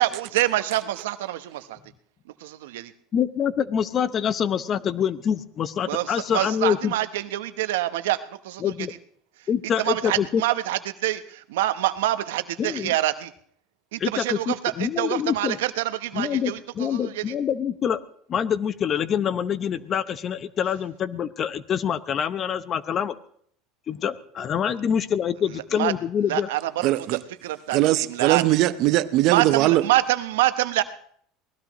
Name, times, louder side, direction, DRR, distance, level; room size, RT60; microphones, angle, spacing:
voice 1, 0.0-1.8 2.4-2.9 5.9-8.2 8.4-8.6 9.8-13.3 13.9-16.6 16.9-17.2 25.8-25.9 26.3-26.6 27.1-27.8 28.1-28.4 29.2-30.8, right 15 dB, 90° right, 0.9 m, -26 dB
voice 2, 3.1-6.9 8.6-8.9 9.5-10.4 12.6-12.9 14.0-15.6 16.1-18.0 18.3-23.1 23.9-26.5, left 8 dB, 35° left, 0.8 m, -25 dB
voice 3, 26.8-27.2 27.7-29.9, right 16 dB, 55° right, 0.8 m, -20 dB
24.0 x 18.5 x 3.1 m
supercardioid pair, 120°, 0 cm